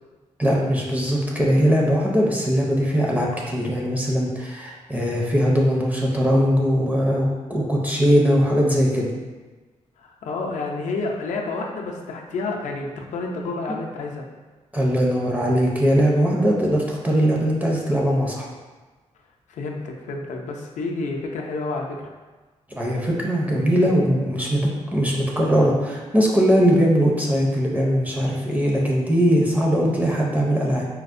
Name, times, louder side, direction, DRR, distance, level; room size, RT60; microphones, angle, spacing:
voice 1, 0.4-9.1 14.7-18.5 22.8-24.6 24.9-30.9, equal, 15° right, -3 dB, 0.5 m, -20 dB
voice 2, 10.0-14.3 19.5-22.0, left 3 dB, 75° left, 1 dB, 0.5 m, -29 dB
4.4 x 2.0 x 2.5 m, 1.3 s
cardioid pair, 105°, 13 cm